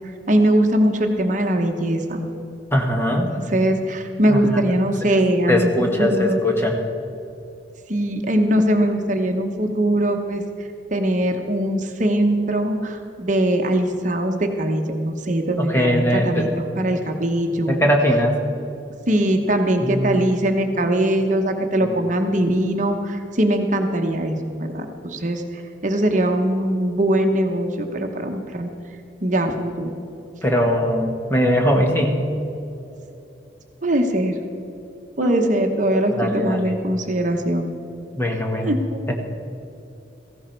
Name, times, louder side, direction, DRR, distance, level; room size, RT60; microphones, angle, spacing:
voice 1, 0.3-2.2 3.5-6.4 7.9-10.4 10.9-17.9 19.1-28.7 29.2-29.9 33.8-34.4 35.2-37.7 38.6-39.0, right 1 dB, 45° right, 4 dB, 1.0 m, -21 dB
voice 2, 2.7-3.3 4.3-4.8 5.5-6.8 15.6-16.5 17.7-18.3 19.8-20.1 21.8-22.0 30.4-32.2 35.2-35.3 36.2-36.7 38.1-38.8 39.1-39.2, equal, 15° left, 1 dB, 1.4 m, -20 dB
17.0 x 15.0 x 4.5 m, 2.8 s
head